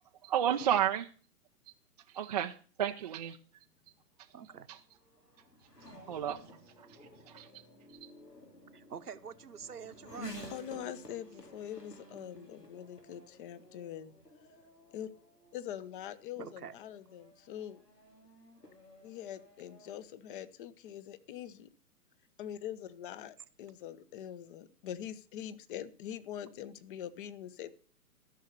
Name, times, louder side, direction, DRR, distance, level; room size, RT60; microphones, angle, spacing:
voice 1, 0.2-1.1 2.1-3.6 4.7-4.8 6.1-6.4 6.8-7.0 7.3-7.5 7.9-8.1, right 10 dB, 30° right, 0.5 m, -32 dB
Race car auto racing / Accelerating revving vroom, 3.8-20.0, equal, 90° left, 3.0 m, -53 dB
voice 2, 4.3-4.7 8.7-10.5 16.4-16.8, right 7 dB, 75° right, 1.2 m, -46 dB
voice 3, 10.5-14.1 14.9-15.1 15.5-17.8 19.0-21.7 22.4-27.7, left 10 dB, 35° left, 1.0 m, -43 dB
14.5 x 6.5 x 6.6 m
figure-of-eight pair, 120°, 46 cm